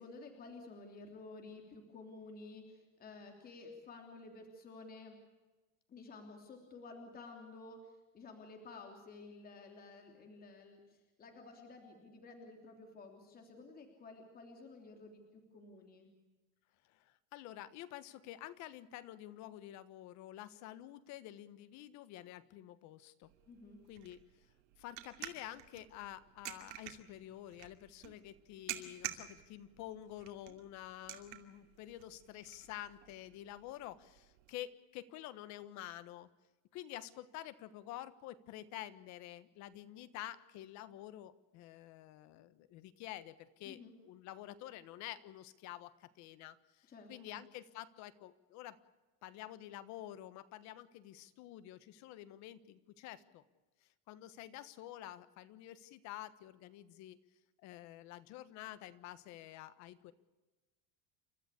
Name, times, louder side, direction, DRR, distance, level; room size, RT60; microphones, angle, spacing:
voice 1, 0.0-5.2 5.9-16.1 23.5-23.8 43.6-43.9 46.9-47.4, left 3 dB, 25° left, 3 dB, 3.2 m, -53 dB
voice 2, 16.8-23.3 23.9-24.2 24.8-36.3 36.7-48.8 49.2-53.4 54.1-57.2 57.6-60.1, left 13 dB, 50° left, 14 dB, 1.4 m, -49 dB
sound 1, 23.2-34.5, right 15 dB, 80° right, 2.5 m, -50 dB
29.5 x 13.5 x 8.4 m, 1.2 s
cardioid pair, 160°, 35 cm